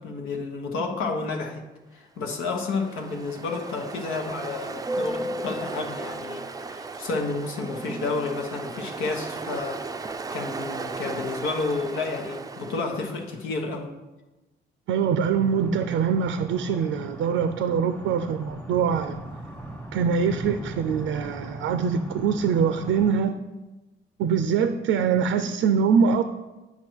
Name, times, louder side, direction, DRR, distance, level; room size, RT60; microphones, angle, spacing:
voice 1, 0.0-1.6 1.9-13.9, left 3 dB, 90° left, 3 dB, 1.2 m, -31 dB
Ocean, 2.3-13.4, right 3 dB, 20° right, 0.4 m, -35 dB
voice 2, 14.9-19.1 19.9-23.4 24.2-26.2, right 6 dB, 85° right, 9 dB, 0.5 m, -23 dB
sound 1, 15.3-23.2, right 1 dB, 5° left, 1.2 m, -39 dB
8.8 x 5.7 x 4.6 m, 1.1 s
cardioid pair, 90°, 20 cm